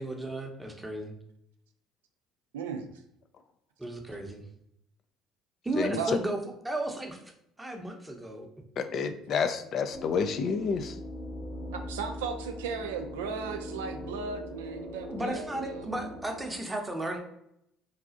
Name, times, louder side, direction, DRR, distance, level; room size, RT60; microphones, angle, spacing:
voice 1, 0.0-1.1 3.8-4.4 5.6-7.2 7.6-8.5 15.1-17.2, right 1 dB, 15° right, 3 dB, 0.7 m, -34 dB
voice 2, 2.5-2.9 5.9-6.2 11.9-15.9, right 5 dB, 85° right, 5 dB, 0.3 m, -36 dB
voice 3, 8.8-10.9, left 5 dB, 55° left, 8 dB, 0.3 m, -29 dB
sound 1, 9.9-16.6, left 1 dB, 80° left, 1.1 m, -41 dB
4.0 x 2.4 x 2.4 m, 0.76 s
hypercardioid pair, 60°, 0 cm